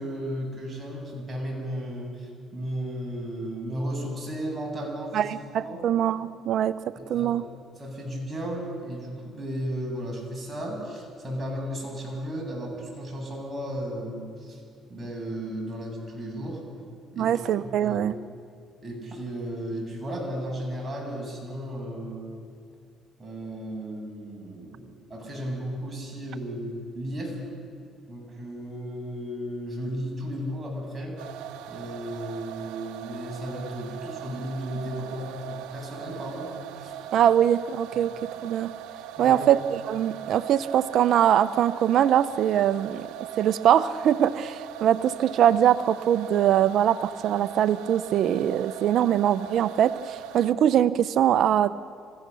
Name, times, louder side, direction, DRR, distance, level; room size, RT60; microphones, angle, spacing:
voice 1, 0.0-5.4 5.6-5.8 7.0-7.3 7.8-14.6 14.9-16.6 17.1-17.3 17.6-18.0 18.8-22.3 23.2-27.4 28.1-31.2 31.7-36.9 39.2-39.4, equal, 20° right, -2 dB, 7.6 m, -34 dB
voice 2, 5.1-7.4 17.2-18.1 37.1-38.1 38.4-38.7 39.2-43.1 43.4-51.7, right 10 dB, 65° right, 15 dB, 0.6 m, -22 dB
sound 1, 31.2-50.5, right 11 dB, 85° right, 0.9 m, -40 dB
26.5 x 16.0 x 6.8 m, 2.3 s
cardioid pair, 90°, 0 cm